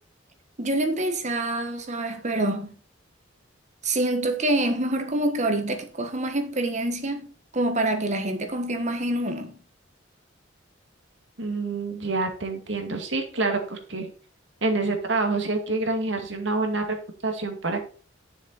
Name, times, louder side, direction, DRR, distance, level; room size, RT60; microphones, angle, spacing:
voice 1, 0.6-2.7 3.8-7.3 7.5-9.6, right 1 dB, 40° right, 1.3 m, -26 dB
voice 2, 11.4-14.1 14.6-17.0 17.2-17.8, right 3 dB, 70° right, 2.2 m, -27 dB
9.8 x 7.2 x 4.1 m
head